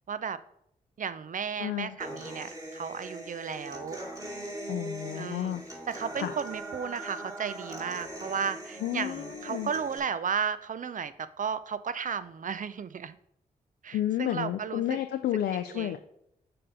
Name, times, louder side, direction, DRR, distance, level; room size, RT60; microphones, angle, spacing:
voice 1, 0.1-0.4 1.0-4.0 5.2-5.5 5.9-13.1 13.8-15.0 15.7-16.0, right 7 dB, 50° right, 14 dB, 0.5 m, -34 dB
voice 2, 1.6-2.0 4.7-5.6 6.2-6.3 8.8-9.7 13.9-16.0, left 12 dB, 80° left, 7 dB, 0.4 m, -31 dB
Human voice / Acoustic guitar, 2.0-10.0, right 1 dB, 20° right, 2.2 m, -41 dB
6.7 x 3.6 x 5.4 m, 0.74 s
supercardioid pair, 40°, 17 cm